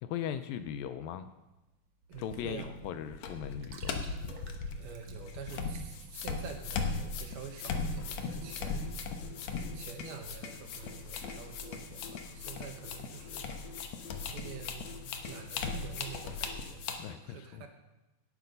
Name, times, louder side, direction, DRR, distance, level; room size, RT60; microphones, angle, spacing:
voice 1, 0.0-1.3 2.2-4.0 17.0-17.7, left 9 dB, 80° left, 10 dB, 2.2 m, -39 dB
sound 1, 1.1-7.8, right 4 dB, 60° right, 1.8 m, -56 dB
sound 2, 2.1-17.0, left 4 dB, 65° left, 1.7 m, -38 dB
voice 2, 2.1-2.7 4.8-9.0 9.7-13.5 14.3-15.0 15.3-17.7, right 6 dB, 80° right, 5 dB, 3.2 m, -47 dB
sound 3, 7.6-16.8, left 5 dB, 45° left, 1.6 m, -53 dB
18.0 x 8.4 x 5.4 m, 1.0 s
omnidirectional pair, 4.4 m